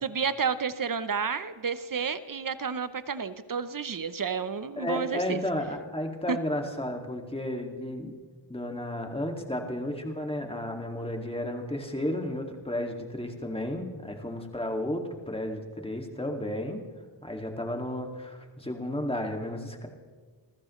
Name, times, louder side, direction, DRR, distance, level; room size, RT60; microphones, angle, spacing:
voice 1, 0.0-5.4 6.3-6.4, right 6 dB, 40° right, 13 dB, 0.9 m, -31 dB
voice 2, 4.7-8.1 8.5-16.8 17.2-19.9, left 1 dB, 10° left, 2 dB, 2.3 m, -33 dB
26.5 x 15.0 x 3.2 m, 1.5 s
cardioid pair, 50°, 50 cm